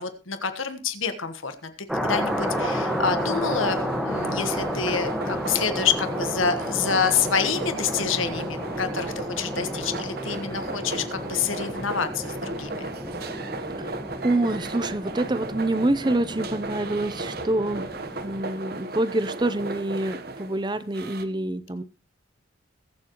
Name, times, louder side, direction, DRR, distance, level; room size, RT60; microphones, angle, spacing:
voice 1, 0.0-12.9, left 6 dB, 85° left, 9 dB, 1.4 m, -27 dB
sound 1, 1.9-18.4, equal, ahead, 1.4 m, -32 dB
sound 2, 2.1-21.2, right 2 dB, 50° right, 1.1 m, -35 dB
voice 2, 13.8-17.8 18.2-21.8, right 2 dB, 20° right, 13 dB, 0.7 m, -26 dB
21.5 x 7.5 x 3.0 m, 0.32 s
head